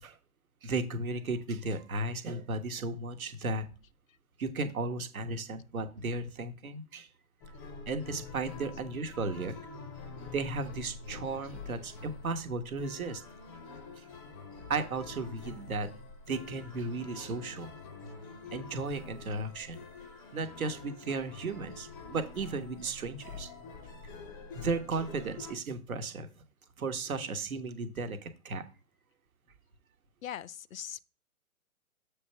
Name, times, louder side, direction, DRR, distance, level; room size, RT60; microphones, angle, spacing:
voice 1, 0.6-3.7 4.4-7.1 7.9-9.5 10.3-13.2 14.7-15.9 16.3-17.7 18.5-19.8 20.3-23.5 24.5-26.3 26.8-28.6, right 3 dB, 65° right, 1.2 m, -35 dB
sound 1, 7.4-25.5, left 4 dB, 15° left, 0.5 m, -46 dB
voice 2, 30.2-31.0, left 10 dB, 65° left, 0.5 m, -40 dB
7.2 x 3.4 x 5.6 m
figure-of-eight pair, 125°, 45 cm